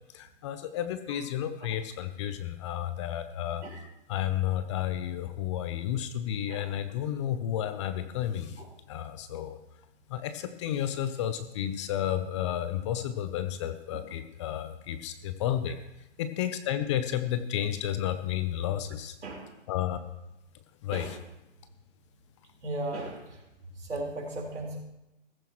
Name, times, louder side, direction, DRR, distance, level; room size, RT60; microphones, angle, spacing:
voice 1, 0.1-3.6 4.1-8.6 8.9-9.6 10.1-15.8 16.2-19.1 19.7-20.0 20.8-21.2, left 11 dB, 25° left, 10 dB, 0.6 m, -32 dB
voice 2, 19.2-19.5 20.9-21.2 22.6-23.4 23.8-24.9, right 2 dB, 75° right, 0 dB, 4.3 m, -36 dB
15.0 x 14.5 x 3.1 m, 0.92 s
hypercardioid pair, 135°, 36 cm